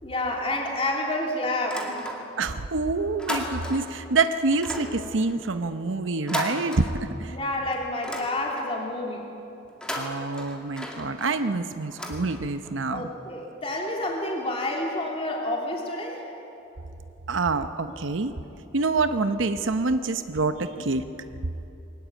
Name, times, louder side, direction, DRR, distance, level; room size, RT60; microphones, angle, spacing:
voice 1, 0.0-2.2 7.3-9.3 12.9-16.3, left 1 dB, 30° left, -1 dB, 2.7 m, -29 dB
sound 1, 1.6-2.6 2.9-4.0 4.5-7.4 7.7-8.9 9.6-12.8, left 1 dB, 5° left, 2.2 m, -36 dB
voice 2, 2.4-7.4 9.9-13.0 17.3-18.3 18.7-21.0, right 3 dB, 90° right, 9 dB, 0.8 m, -26 dB
22.5 x 19.0 x 8.4 m, 2.9 s
head